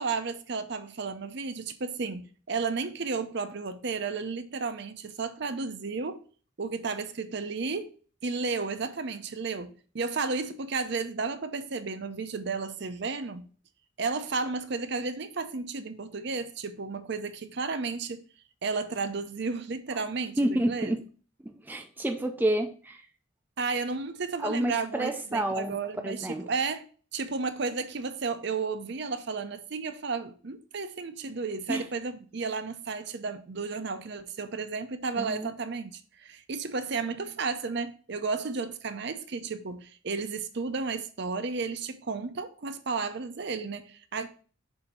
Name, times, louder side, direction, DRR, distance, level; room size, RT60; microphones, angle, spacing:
voice 1, 0.0-6.2 6.6-7.9 8.2-13.5 14.0-18.2 18.6-20.9 23.6-26.8 27.1-44.3, right 4 dB, 55° right, 0.6 m, -33 dB
voice 2, 20.4-21.0 21.4-23.1 24.4-25.8 26.0-26.4 31.7-31.8 35.2-35.5, right 1 dB, 10° right, 0.5 m, -29 dB
6.9 x 2.8 x 5.4 m
head